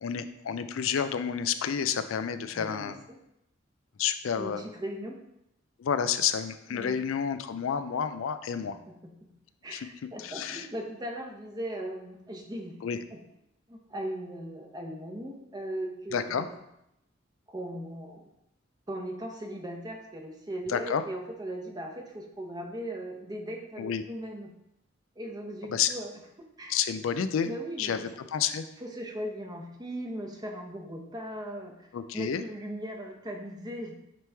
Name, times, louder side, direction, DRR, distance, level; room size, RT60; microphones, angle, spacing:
voice 1, 0.0-3.0 4.0-4.6 5.8-8.8 9.7-10.7 12.8-13.0 16.1-16.5 20.7-21.0 23.8-24.0 25.6-25.9 26.7-27.5 27.8-28.7 31.9-32.4, left 7 dB, 85° left, 11 dB, 0.4 m, -30 dB
voice 2, 2.5-3.2 4.4-5.2 6.7-7.0 8.7-9.3 9.6-12.7 13.1-13.2 13.7-16.5 17.5-18.3 18.9-24.5 25.2-26.1 26.6-26.8 27.4-28.0 28.8-31.9 32.1-34.0, right 1 dB, 20° right, 2 dB, 0.8 m, -38 dB
8.8 x 3.1 x 3.4 m, 0.82 s
head